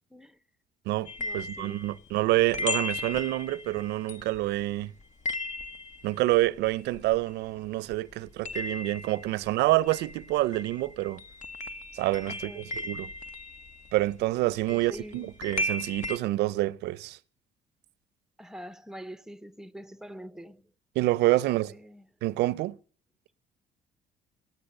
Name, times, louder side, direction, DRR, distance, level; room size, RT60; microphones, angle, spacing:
voice 1, 0.1-0.4 1.2-1.9 12.3-12.7 14.7-15.3 18.4-20.7 21.3-22.1, equal, 5° right, 0.7 m, -45 dB
voice 2, 0.9-4.9 6.0-11.2 11.9-13.1 13.9-17.2 21.0-21.7 22.2-22.8, right 17 dB, 80° right, 0.6 m, -27 dB
sound 1, 1.1-7.7 7.9-16.2, left 2 dB, 45° left, 1.2 m, -37 dB
18.5 x 8.6 x 6.6 m
cardioid pair, 110°, 17 cm